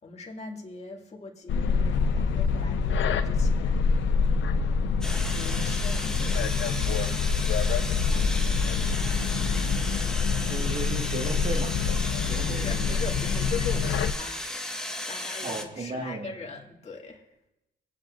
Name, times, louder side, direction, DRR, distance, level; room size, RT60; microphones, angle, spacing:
voice 1, 0.0-4.1 4.8-7.3 7.9-9.5 12.5-17.3, left 5 dB, 35° left, 0 dB, 2.2 m, -42 dB
sound 1, 1.5-14.1, left 5 dB, 70° left, 0.8 m, -26 dB
sound 2, 5.0-15.6, left 1 dB, 5° left, 1.3 m, -35 dB
voice 2, 10.5-11.7 12.3-13.0 15.4-16.3, right 3 dB, 35° right, 0 dB, 1.7 m, -35 dB
25.0 x 8.7 x 2.6 m, 0.93 s
cardioid pair, 90°, 20 cm